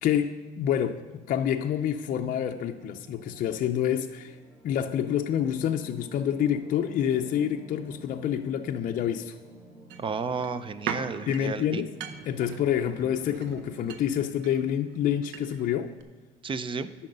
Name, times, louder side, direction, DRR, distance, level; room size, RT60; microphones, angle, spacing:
voice 1, 0.0-4.4 4.6-9.3 11.3-11.9 12.3-15.9, left 9 dB, 55° left, 5 dB, 0.5 m, -27 dB
sound 1, 2.4-12.5, right 1 dB, 10° right, 3.5 m, -50 dB
sound 2, 9.9-15.7 16.0-16.1, right 7 dB, 85° right, 0.8 m, -40 dB
voice 2, 10.0-11.8 16.4-16.9, right 5 dB, 30° right, 13 dB, 0.5 m, -32 dB
10.5 x 5.7 x 6.6 m, 1.3 s
cardioid pair, 110°, 17 cm